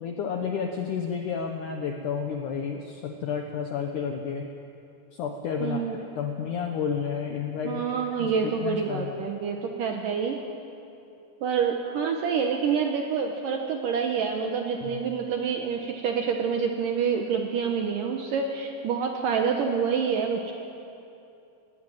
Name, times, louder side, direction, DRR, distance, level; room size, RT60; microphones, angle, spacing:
voice 1, 0.0-4.5 5.1-7.8 8.2-9.1 14.8-15.0, left 6 dB, 75° left, 3 dB, 1.8 m, -31 dB
voice 2, 5.6-6.0 7.7-10.4 11.4-20.5, right 6 dB, 70° right, 3 dB, 2.1 m, -27 dB
19.5 x 16.0 x 9.1 m, 2.8 s
omnidirectional pair, 5.0 m